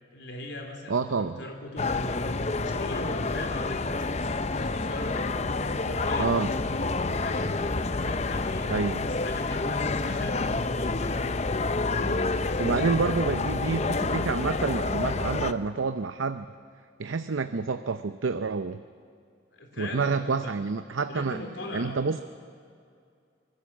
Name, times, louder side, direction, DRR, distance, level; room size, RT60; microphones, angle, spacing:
voice 1, 0.1-7.5 7.9-8.7 9.0-11.2 11.9-13.0 19.5-20.6 21.1-22.1, left 1 dB, 70° left, 3 dB, 3.5 m, -39 dB
voice 2, 0.9-1.4 6.2-6.5 8.7-9.0 12.6-16.5 17.0-18.8 19.8-21.4 21.7-22.2, right 4 dB, 90° right, 10 dB, 0.7 m, -28 dB
sound 1, 1.8-15.5, left 3 dB, 35° left, 0.6 m, -28 dB
25.0 x 20.0 x 7.4 m, 2.3 s
head